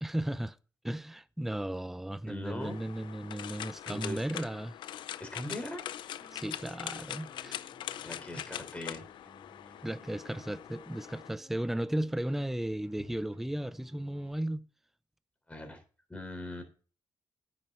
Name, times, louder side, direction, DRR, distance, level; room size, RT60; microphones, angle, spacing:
voice 1, 0.0-0.6 0.8-4.8 6.3-7.5 8.4-8.5 9.8-14.6, right 1 dB, 5° right, 0.6 m, -35 dB
voice 2, 2.3-2.8 3.9-4.2 5.2-5.9 8.0-9.1 15.5-15.8 16.1-16.6, left 1 dB, 15° left, 3.8 m, -40 dB
sound 1, 2.6-11.3, left 11 dB, 80° left, 0.5 m, -43 dB
sound 2, 6.2-14.3, right 2 dB, 25° right, 4.1 m, -59 dB
9.9 x 7.9 x 5.4 m
cardioid pair, 80°, 8 cm